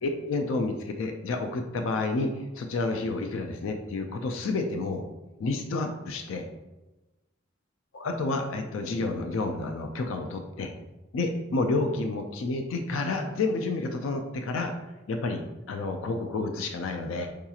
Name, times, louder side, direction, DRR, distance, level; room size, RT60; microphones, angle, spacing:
voice 1, 0.0-5.0 5.4-6.5 7.9-10.7 11.1-14.7 15.1-17.3, left 3 dB, 85° left, 5 dB, 0.4 m, -30 dB
4.7 x 2.8 x 2.3 m, 1.1 s
head